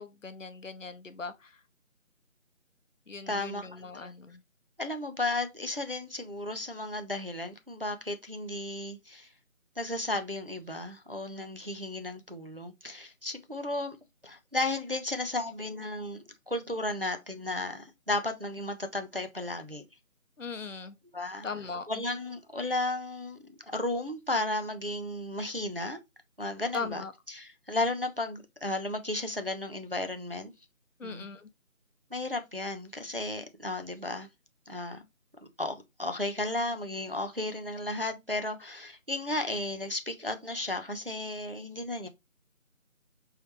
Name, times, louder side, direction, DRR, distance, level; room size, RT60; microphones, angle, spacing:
voice 1, 0.0-1.6 3.1-4.4 20.4-21.0 21.4-21.9 26.7-27.1 31.0-31.5, left 4 dB, 65° left, 0.7 m, -39 dB
voice 2, 3.3-4.1 4.8-9.3 9.8-14.0 14.2-19.8 21.1-21.5 21.9-26.0 26.4-30.5 31.0-31.3 32.1-34.3 34.7-35.0 35.6-42.1, left 2 dB, 45° right, 0.5 m, -34 dB
4.7 x 3.2 x 3.0 m
figure-of-eight pair, 180°, 41 cm